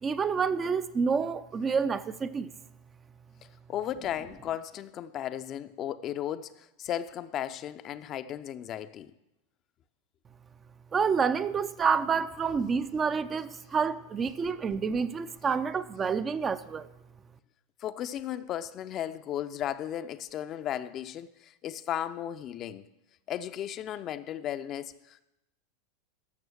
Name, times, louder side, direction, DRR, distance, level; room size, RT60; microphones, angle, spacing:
voice 1, 0.0-2.5 10.9-16.9, right 5 dB, 25° right, 0.5 m, -28 dB
voice 2, 3.7-9.1 17.8-22.9 23.3-25.2, left 11 dB, 40° left, 0.5 m, -35 dB
13.0 x 6.2 x 6.3 m
figure-of-eight pair, 90°, 0 cm